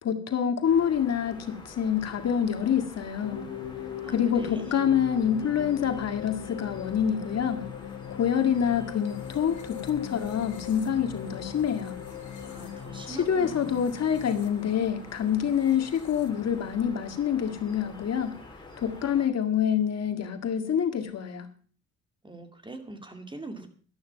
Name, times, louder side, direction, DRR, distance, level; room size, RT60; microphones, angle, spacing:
voice 1, 0.0-3.4 4.1-7.6 8.1-11.9 13.1-18.3 18.8-21.5, left 8 dB, 55° left, 6 dB, 2.0 m, -26 dB
sound 1, 0.6-19.3, left 2 dB, 15° left, 5.1 m, -47 dB
sound 2, 3.2-16.7, left 9 dB, 75° left, 2.1 m, -40 dB
voice 2, 4.0-4.6 12.5-13.8 22.2-23.7, right 2 dB, 15° right, 6 dB, 2.3 m, -42 dB
12.5 x 11.0 x 5.8 m, 0.43 s
cardioid pair, 90°, 30 cm